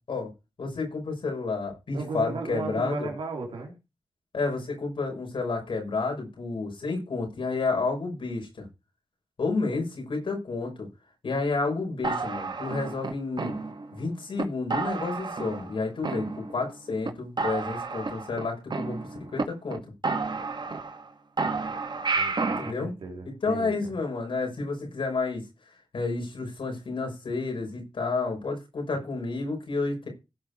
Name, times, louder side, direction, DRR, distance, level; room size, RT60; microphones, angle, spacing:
voice 1, 0.6-3.1 4.3-8.7 9.4-10.9 11.2-13.6 13.9-19.0 19.3-19.8 22.6-22.9 23.4-25.4 25.9-30.1, left 3 dB, 75° left, 6.2 m, -30 dB
voice 2, 1.9-3.7 22.1-23.9 28.9-29.0, right 3 dB, 90° right, 3.2 m, -36 dB
sound 1, 12.0-14.0 14.4-14.5 14.7-15.7 16.0-16.7 17.0-17.1 17.4-19.4 19.7-19.8 20.0-21.1 21.4-22.7, right 4 dB, 60° right, 1.7 m, -31 dB
16.5 x 5.8 x 4.9 m
cardioid pair, 40°, 9 cm